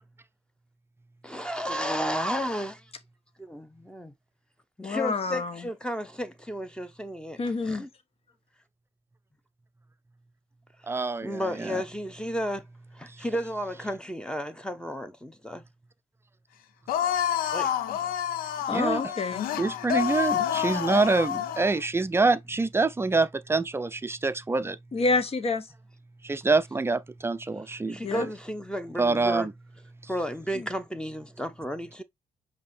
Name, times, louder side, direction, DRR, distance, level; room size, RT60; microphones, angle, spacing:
voice 1, 1.2-2.8 3.4-4.1 4.8-7.9 11.2-12.7 12.9-15.6 17.5-17.7 27.9-29.5 30.1-32.0, equal, 5° left, 1.0 m, -33 dB
voice 2, 4.8-5.5 7.4-7.8 18.7-19.5 24.9-25.7 28.0-28.3 30.6-30.7, left 3 dB, 40° left, 1.0 m, -28 dB
voice 3, 10.9-11.8 18.7-19.1 19.6-24.8 26.2-28.3 29.0-29.5, right 3 dB, 15° right, 0.6 m, -26 dB
sound 1, 16.9-21.8, left 10 dB, 70° left, 0.6 m, -28 dB
5.3 x 2.9 x 3.4 m
hypercardioid pair, 45°, 16 cm